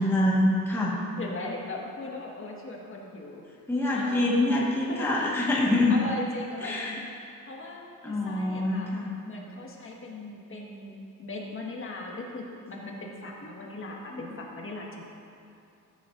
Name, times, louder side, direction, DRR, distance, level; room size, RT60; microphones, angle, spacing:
voice 1, 0.0-1.0 3.7-6.0 6.6-7.0 8.0-9.1 14.1-14.2, left 1 dB, 5° left, -5 dB, 1.5 m, -25 dB
voice 2, 1.2-3.4 3.9-4.3 4.7-5.1 5.9-7.1 7.5-8.9 9.2-15.0, left 2 dB, 40° left, -1 dB, 1.6 m, -38 dB
14.0 x 8.1 x 2.6 m, 2.6 s
cardioid pair, 105°, 33 cm